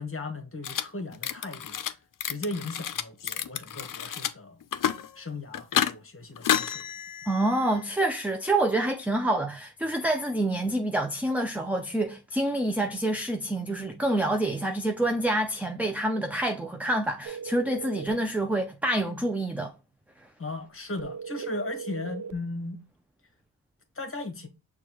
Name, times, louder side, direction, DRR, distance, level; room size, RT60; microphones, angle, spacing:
voice 1, 0.0-1.8 2.2-4.6 5.1-6.8 20.4-22.8 23.9-24.5, left 2 dB, 35° left, 1.0 m, -37 dB
sound 1, 0.6-0.8 1.1-1.9 2.2-4.3 4.6-5.1 5.5-5.9 6.4-7.8, left 9 dB, 60° left, 0.5 m, -30 dB
voice 2, 7.3-19.7, right 1 dB, 5° right, 0.3 m, -27 dB
sound 2, 17.2-18.2 21.0-22.4, right 7 dB, 55° right, 0.5 m, -38 dB
6.3 x 2.3 x 2.9 m
wide cardioid pair, 95°, 38 cm